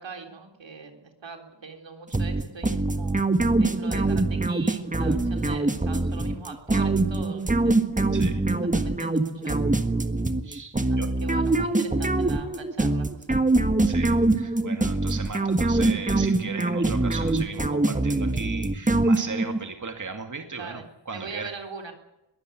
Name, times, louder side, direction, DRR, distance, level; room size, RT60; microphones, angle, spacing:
voice 1, 0.0-3.3 3.6-7.8 8.6-9.5 10.9-13.4 20.5-21.9, right 4 dB, 80° right, 4 dB, 3.9 m, -41 dB
sound 1, 2.1-19.6, right 2 dB, 15° right, 1.6 m, -24 dB
voice 2, 8.1-8.4 10.4-11.1 13.8-21.5, right 4 dB, 40° right, 5 dB, 2.3 m, -37 dB
22.5 x 15.5 x 9.4 m, 0.93 s
wide cardioid pair, 85°, 44 cm